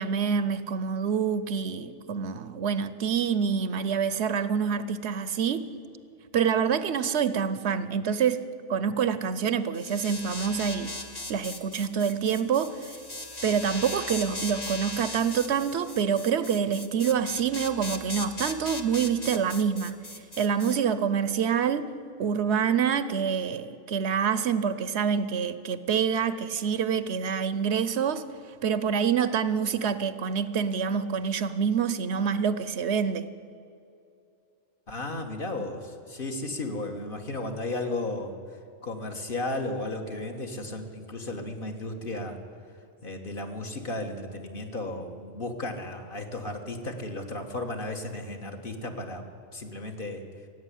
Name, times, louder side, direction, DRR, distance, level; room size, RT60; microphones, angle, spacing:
voice 1, 0.0-5.7 6.3-8.4 8.7-10.9 11.3-12.9 13.4-20.0 20.4-21.9 22.2-28.2 28.6-33.3, right 7 dB, 65° right, 14 dB, 0.9 m, -26 dB
sound 1, 9.7-20.8, left 2 dB, 20° left, 1.0 m, -38 dB
voice 2, 34.9-38.3 38.8-42.4 43.0-49.2 49.5-50.2, left 2 dB, 45° left, 3 dB, 1.6 m, -34 dB
16.5 x 8.1 x 9.9 m, 2.6 s
omnidirectional pair, 1.2 m